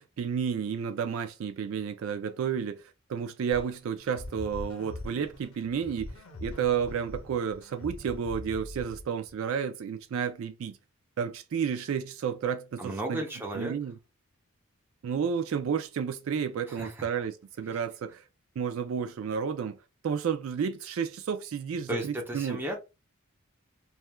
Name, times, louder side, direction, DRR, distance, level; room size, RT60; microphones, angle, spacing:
voice 1, 0.0-2.8 3.1-6.1 6.4-10.8 11.2-13.2 13.6-13.9 15.0-18.2 18.6-19.8 20.0-22.6, right 7 dB, 65° right, 0.3 m, -31 dB
sound 1, 3.5-9.3, left 1 dB, 70° left, 0.7 m, -43 dB
voice 2, 12.8-13.7 16.7-17.1 17.7-17.8 21.9-22.8, right 1 dB, 10° right, 0.6 m, -34 dB
3.0 x 2.2 x 2.2 m
head